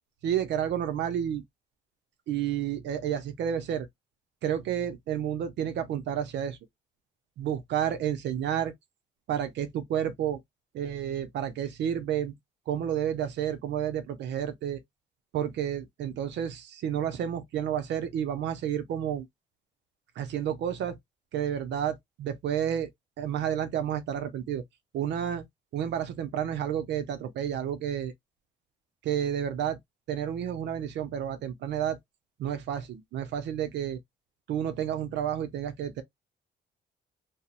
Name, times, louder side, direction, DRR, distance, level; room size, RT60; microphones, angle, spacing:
voice 1, 0.2-1.4 2.3-3.9 4.4-6.6 7.4-8.7 9.3-10.4 10.7-12.3 12.7-14.8 15.3-19.3 20.2-21.0 21.3-22.9 23.2-24.6 24.9-25.4 25.7-28.1 29.0-29.8 30.1-32.0 32.4-34.0 34.5-36.0, right 9 dB, 75° right, 0.5 m, -30 dB
2.6 x 2.0 x 2.4 m
cardioid pair, 95°, 18 cm